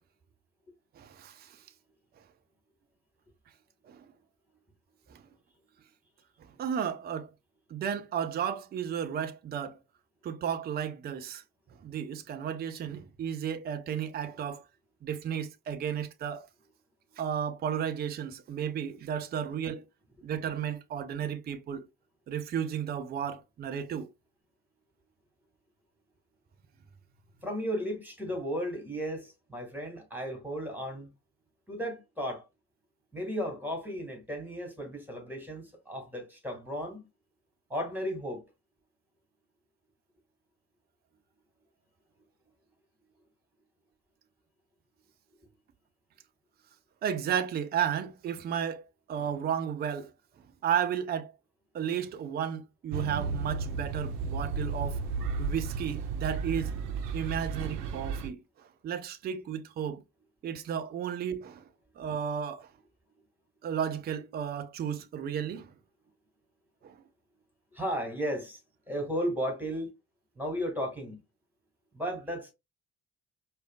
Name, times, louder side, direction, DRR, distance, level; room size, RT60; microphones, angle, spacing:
voice 1, 1.0-1.6 3.9-4.1 5.1-5.2 6.6-7.3 7.7-9.8 10.2-11.4 11.8-14.6 15.0-16.5 17.2-19.8 20.2-21.9 22.3-24.1 47.0-50.1 50.6-51.3 51.7-55.0 55.4-56.7 57.1-60.0 60.4-61.6 62.0-62.7 63.6-65.7 66.8-67.0, right 8 dB, 20° right, 0.4 m, -33 dB
voice 2, 27.4-31.1 31.7-32.4 33.1-37.1 37.7-38.4 45.4-45.5 67.7-68.6 68.9-69.9 70.4-71.2 71.9-72.5, equal, 5° right, 1.6 m, -34 dB
sound 1, 52.9-58.3, right 4 dB, 80° right, 0.6 m, -33 dB
4.8 x 2.4 x 2.2 m
figure-of-eight pair, 45°, 47 cm